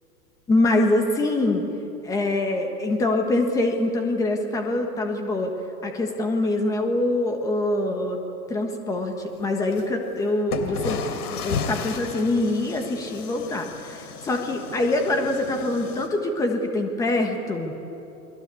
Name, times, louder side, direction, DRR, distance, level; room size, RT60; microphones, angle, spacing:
voice 1, 0.5-1.6 2.0-5.5 5.8-8.2 8.5-11.0 11.3-17.7, left 2 dB, 5° left, 4 dB, 1.3 m, -24 dB
sound 1, 9.7-9.8 10.5-16.1, left 5 dB, 70° left, 3.4 m, -33 dB
29.0 x 22.0 x 8.4 m, 3.0 s
supercardioid pair, 170°, 46 cm